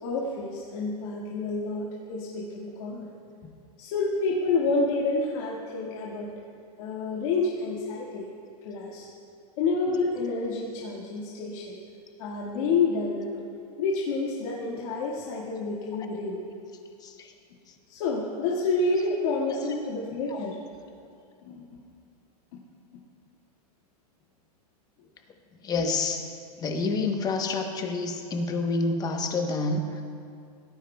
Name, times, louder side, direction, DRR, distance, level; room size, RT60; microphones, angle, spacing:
voice 1, 0.0-3.1 3.8-6.3 6.8-8.3 8.6-9.0 9.6-11.8 12.2-13.3 13.8-16.4 17.9-20.6 21.5-21.6 22.5-22.6, left 3 dB, 55° left, -5 dB, 1.8 m, -28 dB
voice 2, 25.6-26.2 26.6-30.0, left 3 dB, 20° left, 4 dB, 0.9 m, -28 dB
17.5 x 15.0 x 2.2 m, 2.4 s
supercardioid pair, 150°, 21 cm